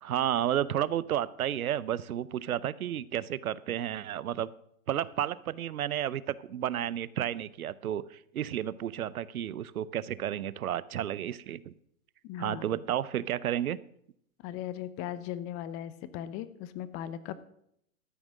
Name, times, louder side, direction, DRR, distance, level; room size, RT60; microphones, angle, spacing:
voice 1, 0.0-4.5 4.9-11.7 12.4-13.8, right 11 dB, 90° right, 19 dB, 0.6 m, -32 dB
voice 2, 12.2-12.7 14.4-17.4, left 11 dB, 30° left, 15 dB, 0.8 m, -38 dB
13.0 x 6.2 x 6.2 m, 0.72 s
hypercardioid pair, 115°, 42 cm